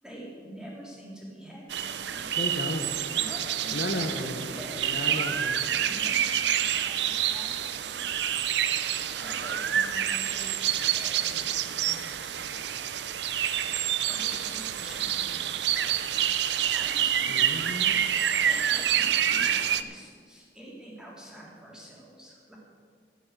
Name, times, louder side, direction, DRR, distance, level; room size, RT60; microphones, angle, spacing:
voice 1, 0.0-2.7 3.1-5.2 5.7-8.0 9.2-12.6 14.1-16.2 16.7-17.5 18.4-22.6, right 1 dB, 5° right, -4 dB, 3.2 m, -46 dB
sound 1, 1.7-19.8, right 10 dB, 70° right, 0.6 m, -28 dB
voice 2, 2.4-2.9 3.7-4.5 4.8-5.6 17.3-18.0, left 1 dB, 60° left, 5 dB, 1.0 m, -34 dB
12.5 x 8.4 x 8.1 m, 2.1 s
head